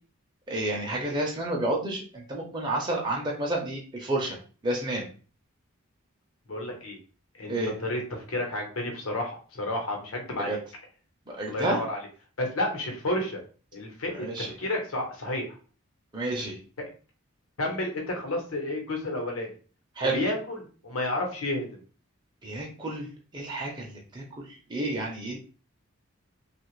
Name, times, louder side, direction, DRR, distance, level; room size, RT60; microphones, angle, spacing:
voice 1, 0.5-4.4 4.6-5.1 7.5-7.7 10.4-10.6 11.3-11.8 14.1-14.5 16.1-16.6 20.0-20.2 22.4-23.1 23.3-25.4, right 1 dB, 20° right, -2 dB, 0.5 m, -30 dB
voice 2, 6.5-7.0 7.4-10.6 11.4-12.0 12.4-13.4 13.7-15.4 17.6-19.5 20.1-21.8, left 1 dB, 85° left, 2 dB, 1.0 m, -31 dB
2.8 x 2.4 x 3.1 m, 0.38 s
head